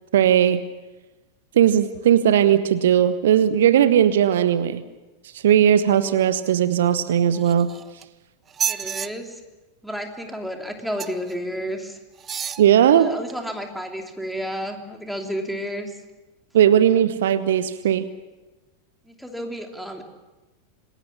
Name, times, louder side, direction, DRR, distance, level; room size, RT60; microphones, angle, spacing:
voice 1, 0.1-0.6 1.6-4.8 5.3-7.7 12.6-13.1 16.5-18.1, right 10 dB, 60° right, 13 dB, 0.9 m, -18 dB
sound 1, 7.3-8.0 8.5-9.1 11.0-11.3 12.2-12.6 13.3-13.4, right 8 dB, 25° right, 0.8 m, -29 dB
voice 2, 8.7-9.4 9.8-12.0 12.9-15.9 19.1-20.0, equal, ahead, 3 dB, 3.0 m, -31 dB
26.5 x 20.5 x 7.2 m, 1.1 s
figure-of-eight pair, 90°, 0 cm